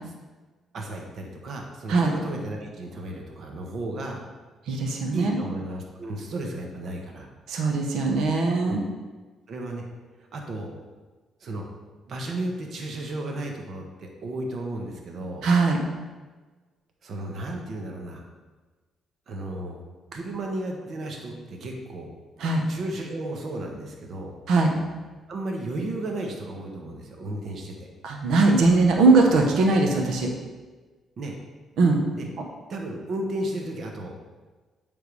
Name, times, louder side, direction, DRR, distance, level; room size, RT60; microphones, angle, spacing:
voice 1, 0.7-4.2 5.1-7.3 8.6-8.8 9.5-9.8 10.3-10.7 11.4-11.7 12.1-15.5 17.0-18.3 19.3-19.8 20.1-22.1 22.7-24.3 25.3-27.9 31.2-31.3 32.1-32.3 32.7-34.1, right 1 dB, 55° right, 1 dB, 1.1 m, -34 dB
voice 2, 4.7-5.4 7.5-8.8 15.4-15.8 22.4-22.6 24.5-24.7 28.0-30.3 31.8-32.0, right 3 dB, 80° right, 2 dB, 1.2 m, -20 dB
8.3 x 3.7 x 4.8 m, 1.3 s
cardioid pair, 90°, 0 cm